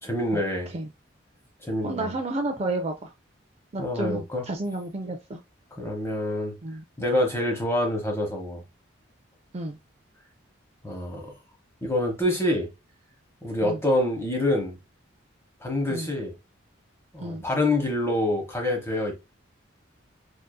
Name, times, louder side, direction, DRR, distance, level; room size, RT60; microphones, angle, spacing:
voice 1, 0.0-0.7 1.6-2.1 3.8-4.4 5.7-6.5 7.0-8.6 10.8-11.3 11.8-12.7 13.4-14.8 15.6-16.3 17.1-19.2, left 1 dB, 10° left, 0.9 m, -26 dB
voice 2, 1.8-3.1 3.7-5.4 6.6-6.8 9.5-9.8 13.6-13.8 15.9-16.1 17.2-17.4, right 2 dB, 30° right, 0.4 m, -31 dB
4.8 x 2.6 x 2.2 m
head